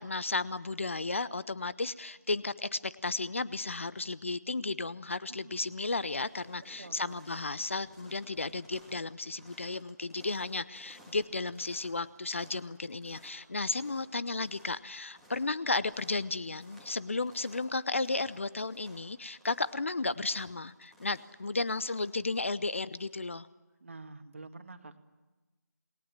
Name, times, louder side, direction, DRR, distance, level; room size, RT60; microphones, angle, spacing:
voice 1, 0.0-23.5, left 3 dB, 45° left, 17 dB, 0.7 m, -34 dB
sound 1, 5.1-5.2 5.5-23.4, equal, 5° left, 1.8 m, -59 dB
voice 2, 5.3-5.8 6.8-7.2 23.8-25.0, right 3 dB, 45° right, 7 dB, 2.0 m, -48 dB
27.5 x 20.5 x 7.5 m, 1.2 s
figure-of-eight pair, 170°, 10 cm